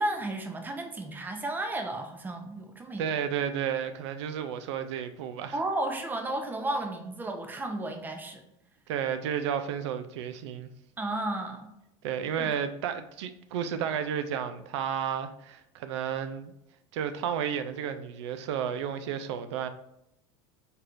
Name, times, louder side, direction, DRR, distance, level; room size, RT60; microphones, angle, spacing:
voice 1, 0.0-3.0 5.5-8.4 11.0-11.7 12.4-12.5, right 2 dB, 15° right, 0.6 m, -33 dB
voice 2, 3.0-5.6 8.9-10.7 12.0-16.5 16.9-19.7, right 8 dB, 90° right, 0.4 m, -32 dB
4.3 x 3.3 x 2.5 m
supercardioid pair, 120°, 14 cm